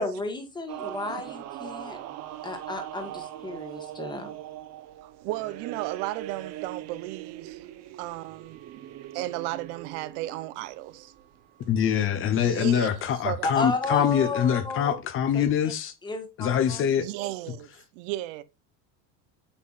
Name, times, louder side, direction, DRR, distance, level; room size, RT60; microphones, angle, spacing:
voice 1, 0.0-2.0 2.4-4.4 13.4-14.9 15.3-15.4 16.0-16.9, left 3 dB, 10° left, 1.3 m, -32 dB
sound 1, 0.7-13.9, right 13 dB, 45° right, 0.9 m, -41 dB
voice 2, 5.0-7.7 8.0-8.6 9.1-11.1 12.3-13.5 14.0-14.1 17.0-18.4, right 16 dB, 90° right, 0.8 m, -34 dB
voice 3, 11.7-15.9 16.4-17.0, left 9 dB, 35° left, 0.8 m, -24 dB
8.3 x 5.6 x 2.4 m
cardioid pair, 160°, 35 cm